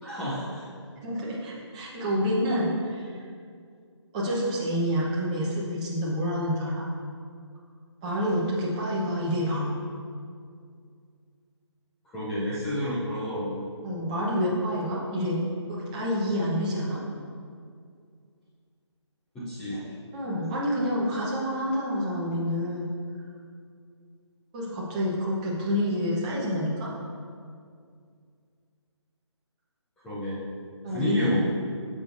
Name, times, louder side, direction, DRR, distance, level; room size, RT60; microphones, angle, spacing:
voice 1, 0.0-0.6 12.1-13.6 19.3-19.8 30.0-30.4 30.9-31.4, equal, 5° left, -12 dB, 0.5 m, -30 dB
voice 2, 1.0-3.1 4.1-6.8 8.0-9.7 13.8-15.4 15.7-17.0 20.1-22.9 24.5-26.9 30.8-31.4, equal, 15° right, -6 dB, 1.0 m, -28 dB
9.7 x 7.0 x 2.6 m, 2.2 s
hypercardioid pair, 165°, 16 cm